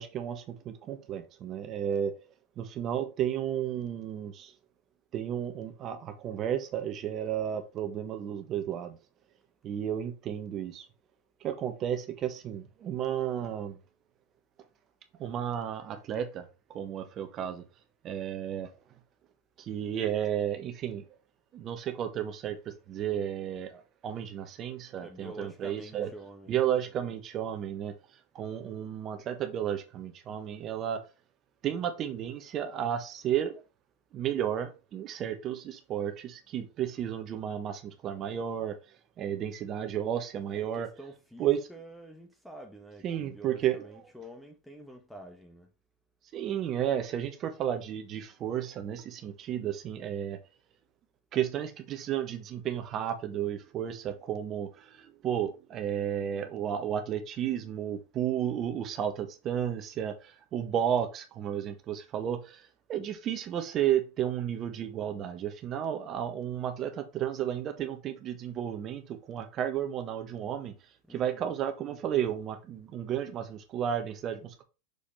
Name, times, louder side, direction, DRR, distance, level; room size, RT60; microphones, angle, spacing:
voice 1, 0.0-2.1 2.6-4.5 5.1-9.0 9.6-10.9 11.4-13.8 15.2-16.4 16.7-17.6 18.0-18.7 19.6-21.0 21.5-26.1 26.5-27.9 28.3-31.0 31.6-33.6 34.1-38.8 39.2-40.9 41.4-41.7 43.0-43.8 46.3-50.4 51.3-70.7 71.1-74.6, right 10 dB, 35° right, 1.3 m, -33 dB
voice 2, 25.0-26.6 40.4-45.7 71.0-71.6, right 1 dB, ahead, 1.4 m, -48 dB
6.6 x 5.0 x 3.3 m
figure-of-eight pair, 85°, 0 cm